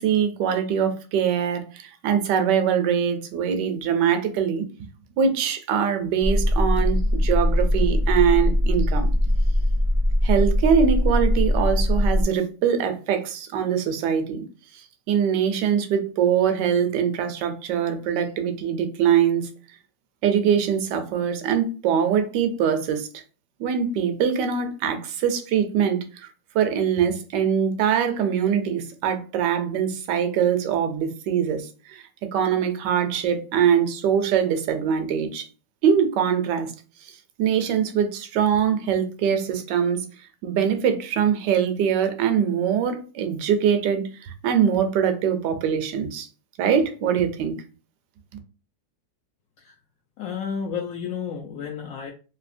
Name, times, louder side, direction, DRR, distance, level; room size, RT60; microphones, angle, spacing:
voice 1, 0.0-4.6 5.2-9.1 10.2-14.5 14.7-19.5 20.2-23.1 23.6-26.3 26.5-35.4 35.8-36.7 37.0-37.1 37.4-40.0 40.4-46.3 46.6-47.6, right 8 dB, 75° right, 7 dB, 1.2 m, -23 dB
sound 1, 6.2-12.2, left 1 dB, 50° left, 0.4 m, -21 dB
voice 2, 50.2-52.1, left 7 dB, 80° left, 0 dB, 0.7 m, -31 dB
3.2 x 2.7 x 2.5 m, 0.35 s
omnidirectional pair, 2.0 m